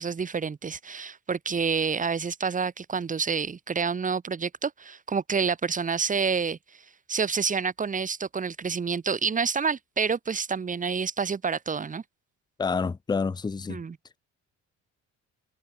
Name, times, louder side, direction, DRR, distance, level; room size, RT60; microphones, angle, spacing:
voice 1, 0.0-6.6 7.1-12.0 13.7-13.9, right 5 dB, 25° right, 3.0 m, -28 dB
voice 2, 12.6-13.8, left 5 dB, 15° left, 0.7 m, -28 dB
cardioid pair, 145°, 30 cm